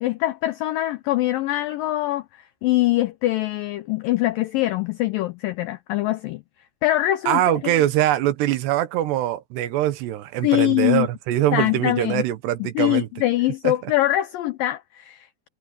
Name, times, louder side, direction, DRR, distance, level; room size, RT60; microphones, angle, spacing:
voice 1, 0.0-2.2 2.6-6.4 6.8-7.7 10.4-11.1 11.5-12.2 12.6-15.5, left 16 dB, 90° left, 1.9 m, -23 dB
voice 2, 7.3-13.1 13.6-13.7, right 13 dB, 80° right, 3.2 m, -23 dB
omnidirectional pair, 4.9 m